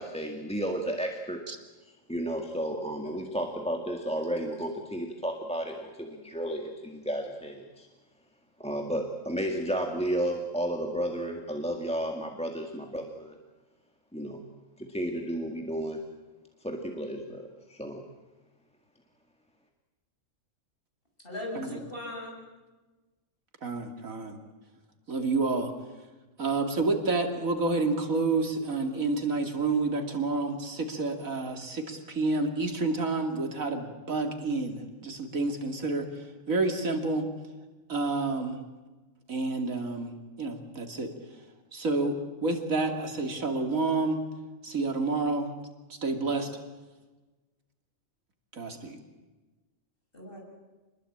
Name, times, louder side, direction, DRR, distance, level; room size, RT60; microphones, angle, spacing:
voice 1, 0.0-1.4 2.1-7.9 8.6-13.4 14.1-14.4 14.8-16.0 16.6-18.0, right 1 dB, 5° left, 3 dB, 1.8 m, -32 dB
voice 2, 21.2-22.4 50.1-50.4, left 2 dB, 40° left, 0 dB, 7.4 m, -38 dB
voice 3, 23.6-24.4 25.1-25.7 26.4-37.3 37.9-38.6 39.3-40.1 40.4-41.1 41.7-44.2 44.6-45.5 45.9-46.5 48.5-49.0, right 3 dB, 85° right, 5 dB, 3.0 m, -29 dB
26.5 x 21.0 x 8.7 m, 1.2 s
omnidirectional pair, 1.4 m